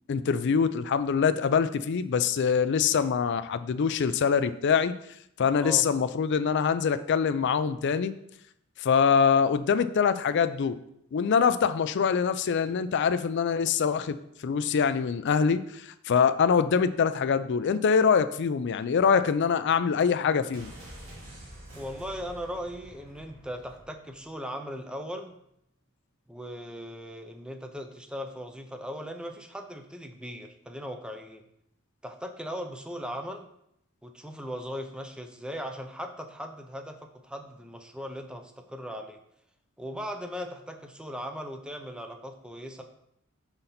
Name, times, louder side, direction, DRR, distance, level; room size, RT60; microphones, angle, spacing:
voice 1, 0.1-4.9 5.4-8.2 8.8-10.8 11.1-14.2 14.4-20.7, left 6 dB, 55° left, 12 dB, 0.4 m, -24 dB
sound 1, 20.5-24.3 24.6-24.7, right 1 dB, 70° right, 2.0 m, -47 dB
voice 2, 21.8-25.3 26.3-31.4 32.0-33.5 34.0-39.2 39.8-42.8, equal, 5° right, 5 dB, 0.6 m, -38 dB
5.8 x 3.9 x 5.7 m, 0.76 s
head